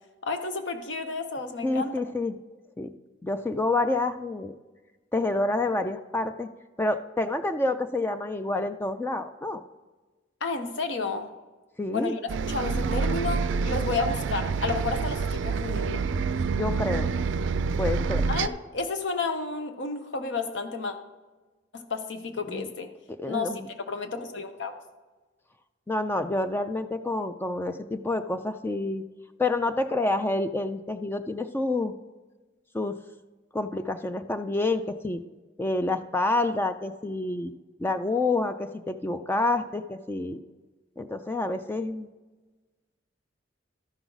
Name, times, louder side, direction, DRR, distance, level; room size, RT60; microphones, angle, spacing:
voice 1, 0.2-1.9 10.4-11.3 11.9-12.2 12.5-16.1 18.3-20.9 21.7-22.9 23.2-23.6 23.9-24.8, left 3 dB, 75° left, 7 dB, 0.9 m, -31 dB
voice 2, 1.6-2.4 2.8-2.9 3.2-4.5 5.1-6.5 6.8-9.6 11.8-12.2 16.5-17.1 17.8-18.2 22.5-22.7 23.2-23.6 25.9-29.0 29.4-31.9 32.7-33.0 33.5-35.2 35.6-37.5 37.8-40.4 41.0-42.1, left 2 dB, 10° left, 8 dB, 0.3 m, -28 dB
Bus, 12.3-18.5, right 5 dB, 70° right, 0.4 m, -27 dB
13.0 x 6.0 x 3.9 m, 1.3 s
head